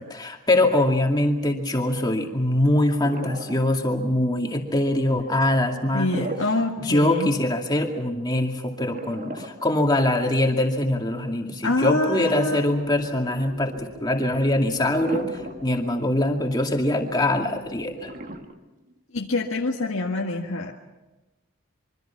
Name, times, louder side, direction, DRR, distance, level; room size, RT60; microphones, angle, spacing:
voice 1, 0.0-6.3 6.8-18.1, left 1 dB, 20° left, 2 dB, 2.3 m, -23 dB
sound 1, 3.0-4.0 5.9-6.7 7.1-7.2 8.9-10.4 11.9-12.8 13.2-13.3 14.9-15.8 16.1-16.2 17.9-19.0, right 1 dB, 40° right, 1.7 m, -37 dB
voice 2, 5.9-7.3 11.6-12.6 19.1-20.7, left 2 dB, 75° left, -1 dB, 1.7 m, -25 dB
sound 2, 11.3-18.4, equal, 70° right, 4.6 m, -45 dB
25.5 x 24.0 x 5.9 m, 1.1 s
head